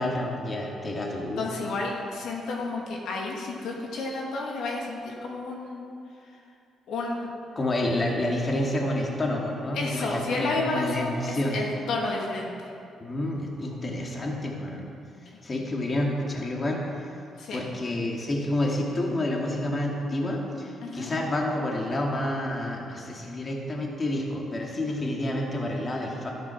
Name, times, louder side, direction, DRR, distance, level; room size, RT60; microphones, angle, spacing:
voice 1, 0.0-1.4 7.6-11.6 13.0-14.9 15.4-17.2 17.5-26.3, left 1 dB, 35° left, -1 dB, 2.3 m, -29 dB
voice 2, 1.4-5.9 6.9-7.3 8.0-8.1 9.7-12.7 17.4-17.6 20.8-21.1, left 3 dB, 75° left, -2 dB, 2.4 m, -31 dB
12.5 x 10.5 x 5.9 m, 2.5 s
cardioid pair, 80°, 0 cm